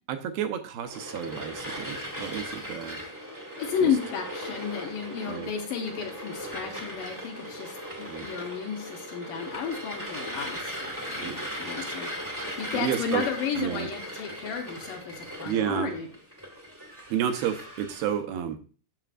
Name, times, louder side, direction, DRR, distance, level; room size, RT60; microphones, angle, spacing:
voice 1, 0.1-3.0 3.8-3.9 5.3-5.5 8.1-8.3 11.2-11.4 12.7-13.2 13.6-13.9 15.4-15.9 17.1-18.6, right 9 dB, 80° right, 6 dB, 2.5 m, -31 dB
sound 1, 0.8-18.1, equal, 20° right, 0.4 m, -38 dB
voice 2, 3.6-12.1 12.6-16.1, left 7 dB, 75° left, 2 dB, 2.2 m, -32 dB
9.0 x 7.0 x 2.5 m, 0.38 s
omnidirectional pair, 4.4 m